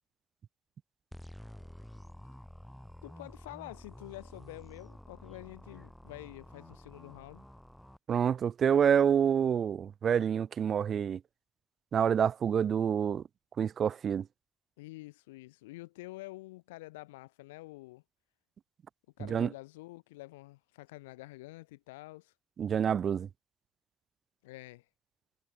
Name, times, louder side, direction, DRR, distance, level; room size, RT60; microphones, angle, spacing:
sound 1, 1.1-8.0, equal, 5° left, 3.5 m, -50 dB
voice 1, 3.0-7.5 14.8-18.0 19.2-22.3 24.4-24.8, left 20 dB, 85° left, 1.6 m, -48 dB
voice 2, 8.1-11.2 11.9-13.2 13.6-14.3 19.2-19.5 22.6-23.3, right 8 dB, 55° right, 0.4 m, -27 dB
hypercardioid pair, 50°, 0 cm